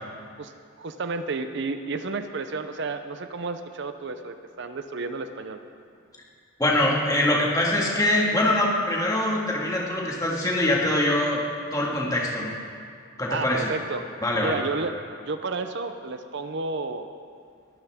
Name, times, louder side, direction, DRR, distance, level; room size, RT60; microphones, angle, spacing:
voice 1, 0.8-5.6 13.3-14.0 14.4-15.0 15.2-17.1, right 3 dB, 55° right, 9 dB, 0.6 m, -31 dB
voice 2, 6.6-11.4 11.7-12.5 13.2-13.7 14.2-14.6, left 1 dB, 15° left, -3 dB, 1.9 m, -23 dB
21.0 x 12.5 x 3.6 m, 2.3 s
head